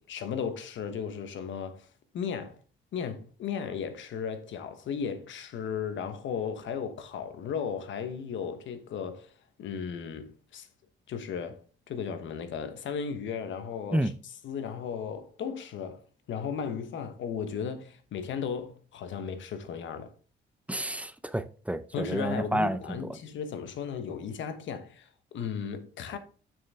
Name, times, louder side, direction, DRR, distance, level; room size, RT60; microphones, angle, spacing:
voice 1, 0.0-1.9 2.1-2.6 2.9-9.3 9.6-10.7 11.1-16.0 16.3-20.1 21.9-26.2, left 7 dB, 75° left, 1.2 m, -35 dB
voice 2, 20.7-23.0, right 1 dB, 5° right, 0.6 m, -30 dB
6.9 x 6.4 x 3.6 m
cardioid pair, 90°, 20 cm